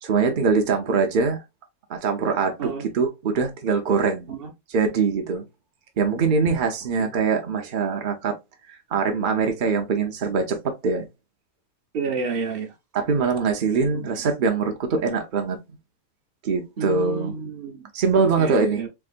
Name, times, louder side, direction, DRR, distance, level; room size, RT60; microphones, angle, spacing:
voice 1, 0.0-1.4 1.9-4.3 4.7-5.4 6.0-8.4 8.9-11.1 12.9-15.6 16.4-17.3 17.9-18.8, right 5 dB, 90° right, 0.4 m, -23 dB
voice 2, 11.9-12.7 13.8-14.0 16.8-17.9 18.2-18.9, right 4 dB, 45° right, 0.8 m, -30 dB
3.6 x 3.4 x 2.4 m
omnidirectional pair, 1.8 m